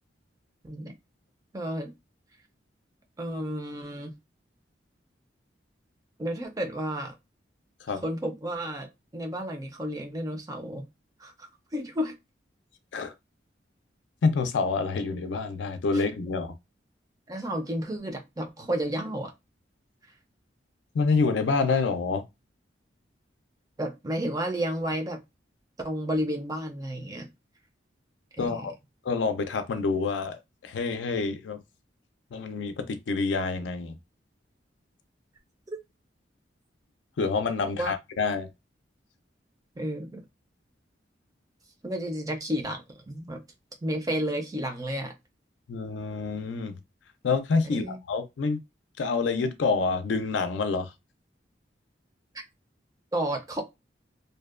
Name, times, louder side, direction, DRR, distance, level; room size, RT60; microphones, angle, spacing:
voice 1, 1.5-1.9 3.2-4.1 6.2-7.1 7.9-10.9 11.2-12.1 15.9-16.0 17.3-19.3 23.8-25.2 25.8-27.3 28.4-28.6 37.8-37.9 39.8-40.2 41.8-43.4 43.8-45.1 47.7-48.0 53.1-53.6, equal, 20° right, 0.4 m, -32 dB
voice 2, 14.2-16.5 20.9-22.3 28.4-28.7 29.0-31.6 32.3-33.9 37.2-38.5 45.7-46.8 47.2-48.6 49.0-50.9, left 4 dB, 80° left, 0.4 m, -27 dB
2.6 x 2.1 x 2.4 m
head